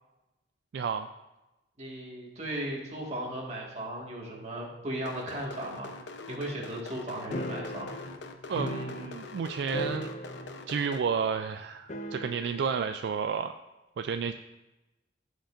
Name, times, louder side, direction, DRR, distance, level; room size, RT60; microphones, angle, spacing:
voice 1, 0.7-1.1 8.5-10.1 10.7-13.5 14.0-14.3, right 6 dB, 65° right, 8 dB, 0.3 m, -31 dB
voice 2, 1.8-5.9 6.3-7.9, right 1 dB, 35° right, -2 dB, 1.7 m, -36 dB
sound 1, 5.0-11.0, left 3 dB, 75° left, 0.7 m, -44 dB
sound 2, 7.3-9.4 9.7-10.7 11.0-11.1 11.9-12.7, equal, 40° left, 0.5 m, -37 dB
15.5 x 5.2 x 2.5 m, 1.0 s
head